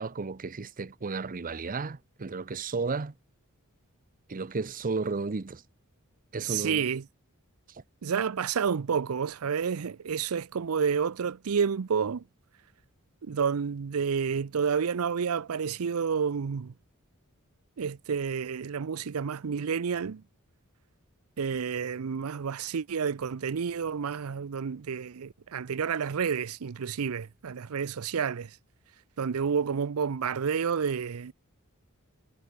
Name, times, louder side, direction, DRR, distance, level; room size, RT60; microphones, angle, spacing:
voice 1, 0.0-3.1 4.3-5.6 6.3-6.9, right 4 dB, 40° right, 0.7 m, -33 dB
voice 2, 6.4-7.0 8.0-12.2 13.2-16.7 17.8-20.2 21.4-28.6 29.2-31.3, right 6 dB, 75° right, 0.5 m, -30 dB
head